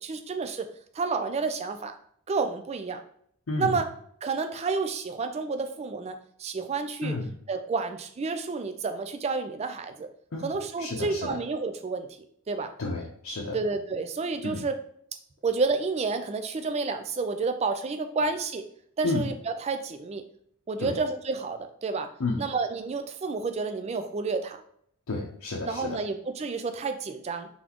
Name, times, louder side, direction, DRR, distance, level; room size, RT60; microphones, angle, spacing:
voice 1, 0.0-0.7 1.0-1.9 2.3-3.0 3.6-3.9 4.2-7.2 7.5-10.1 10.4-12.1 12.5-12.7 13.5-14.8 15.4-18.7 19.0-20.2 20.7-22.1 22.4-24.6 25.6-27.5, right 4 dB, 30° right, 8 dB, 0.3 m, -30 dB
voice 2, 3.5-3.8 7.0-7.3 10.3-10.5 10.8-11.4 12.8-13.6 14.4-14.6 19.0-19.3 20.8-21.0 22.2-22.4 25.1-26.0, left 2 dB, 70° left, -1 dB, 0.7 m, -31 dB
4.1 x 3.7 x 2.9 m, 0.65 s
head